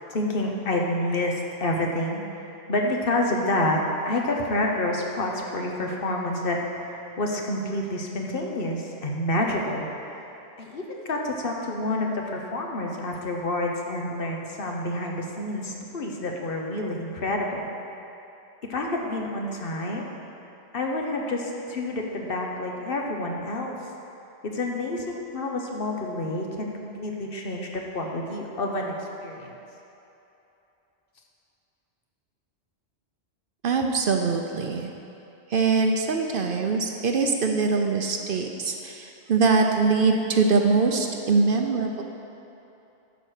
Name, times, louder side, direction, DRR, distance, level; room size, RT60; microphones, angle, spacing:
voice 1, 0.1-10.3 10.6-17.7 18.7-20.1 20.7-23.7 24.4-27.7 27.9-29.5, left 1 dB, 60° left, 0 dB, 1.1 m, -28 dB
voice 2, 33.6-34.9 35.5-42.0, right 4 dB, 60° right, 3 dB, 0.8 m, -23 dB
11.0 x 4.6 x 6.5 m, 2.9 s
omnidirectional pair, 1.1 m